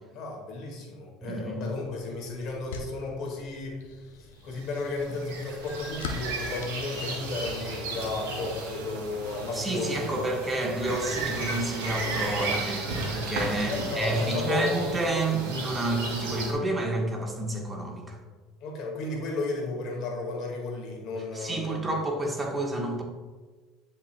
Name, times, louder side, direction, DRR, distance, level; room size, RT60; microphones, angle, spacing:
voice 1, 0.1-3.8 4.4-10.4 13.6-14.9 18.6-21.8, left 3 dB, 60° left, 0 dB, 1.8 m, -33 dB
voice 2, 1.2-1.7 9.5-18.2 21.3-23.0, right 2 dB, 20° right, 1 dB, 1.3 m, -30 dB
sound 1, 1.6-7.7, left 4 dB, 80° left, 0.8 m, -44 dB
sound 2, 4.6-16.5, right 2 dB, 75° right, 2.1 m, -34 dB
10.0 x 5.3 x 2.3 m, 1.4 s
hypercardioid pair, 80°, 0 cm